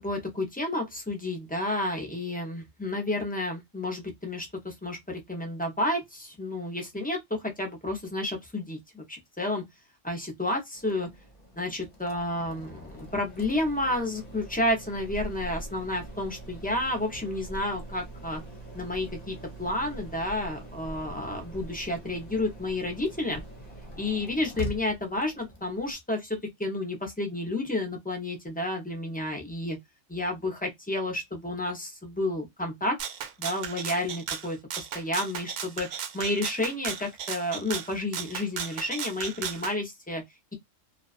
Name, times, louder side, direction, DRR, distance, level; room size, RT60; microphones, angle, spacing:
voice 1, 0.0-9.6 10.0-11.1 11.6-18.4 18.7-23.4 24.0-29.8 30.1-33.0 33.4-40.2, left 1 dB, 15° left, 0.3 m, -31 dB
sound 1, 10.7-25.9, equal, 40° left, 0.7 m, -43 dB
Rattle (instrument), 33.0-39.7, right 8 dB, 80° right, 1.0 m, -35 dB
2.4 x 2.3 x 2.4 m
omnidirectional pair, 1.3 m